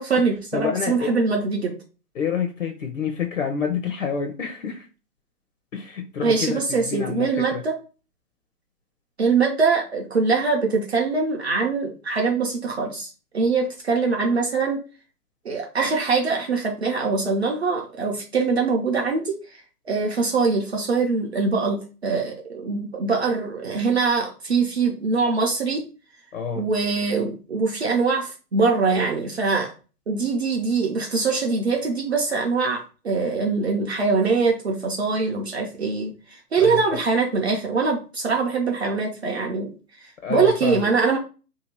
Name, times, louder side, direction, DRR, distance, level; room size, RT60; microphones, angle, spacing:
voice 1, 0.0-1.7 6.2-7.7 9.2-14.8 15.4-19.3 19.9-25.8 26.6-29.7 30.1-36.1 36.5-39.7 40.3-41.2, right 4 dB, 40° right, 1 dB, 0.6 m, -23 dB
voice 2, 0.5-1.1 2.1-4.9 5.7-7.6 26.3-26.6 36.6-37.0 40.2-40.9, left 6 dB, 55° left, 5 dB, 0.7 m, -28 dB
2.8 x 2.6 x 4.2 m, 0.34 s
figure-of-eight pair, 145°, 49 cm